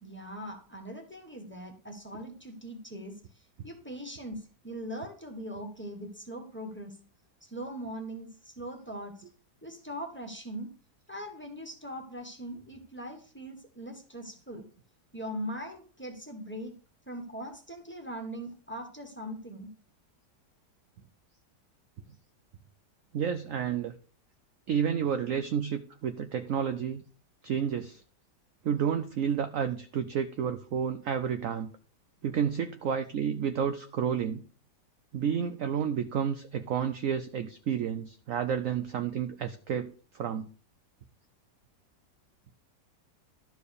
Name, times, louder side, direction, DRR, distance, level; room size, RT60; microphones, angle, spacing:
voice 1, 0.0-3.1 3.6-7.0 7.4-9.2 9.6-10.7 11.1-14.6 15.1-16.8 17.1-19.7, equal, 5° left, 2 dB, 1.6 m, -41 dB
voice 2, 23.1-23.9 24.7-27.0 27.4-28.0 28.6-31.7 32.2-34.4 35.1-40.5, right 8 dB, 65° right, 10 dB, 0.9 m, -30 dB
12.0 x 4.7 x 6.7 m, 0.40 s
omnidirectional pair, 1.9 m